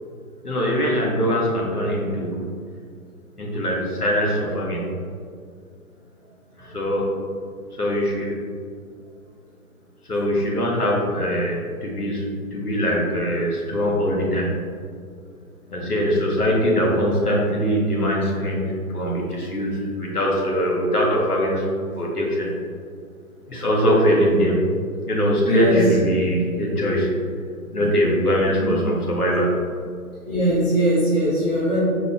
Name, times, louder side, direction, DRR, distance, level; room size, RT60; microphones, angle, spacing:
voice 1, 0.4-2.5 3.4-4.8 6.6-7.1 7.8-8.3 10.1-14.6 15.7-21.7 22.0-22.5 23.5-24.6 25.1-27.1 27.7-29.7, equal, 80° left, -3 dB, 1.3 m, -22 dB
voice 2, 25.4-25.8 28.6-28.7 30.2-31.8, right 1 dB, 5° left, -15 dB, 0.6 m, -21 dB
5.3 x 4.3 x 2.3 m, 2.2 s
figure-of-eight pair, 135°, 45 cm